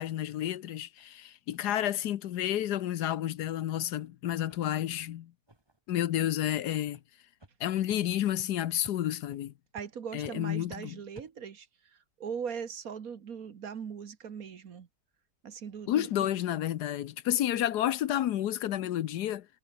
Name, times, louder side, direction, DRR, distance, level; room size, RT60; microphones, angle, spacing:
voice 1, 0.0-5.3 5.9-7.0 7.6-9.5 10.1-10.9 15.9-19.5, left 12 dB, 75° left, 1.3 m, -30 dB
sound 1, 1.0-1.1 1.5-1.6 2.0-2.1 2.5-2.6 3.0-3.1 3.5-3.6 4.0-4.1 4.5-4.6 5.0-5.1 5.5-5.8 6.4-6.5 6.9-7.0 7.4-7.5 7.9-8.0 8.4-8.5 8.8-9.0 9.3-9.4 9.8-9.9 10.2-10.4 10.7-10.8 11.1-11.3, right 2 dB, 15° right, 2.3 m, -53 dB
voice 2, 9.7-14.9 15.4-16.3, right 7 dB, 60° right, 1.7 m, -40 dB
omnidirectional pair, 1.8 m